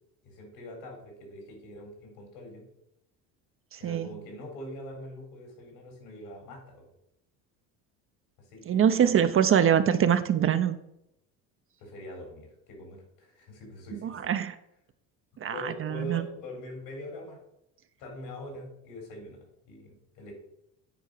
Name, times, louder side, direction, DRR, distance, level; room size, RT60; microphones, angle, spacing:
voice 1, 0.2-2.7 3.8-6.9 8.4-9.1 11.8-14.3 15.3-17.4 18.0-19.4 19.7-20.3, left 1 dB, 75° left, 2 dB, 4.1 m, -43 dB
voice 2, 3.7-4.1 8.7-10.8 13.9-14.5 15.4-16.2, right 9 dB, 35° right, 10 dB, 0.6 m, -24 dB
9.1 x 4.6 x 6.6 m, 0.81 s
supercardioid pair, 95°, 39 cm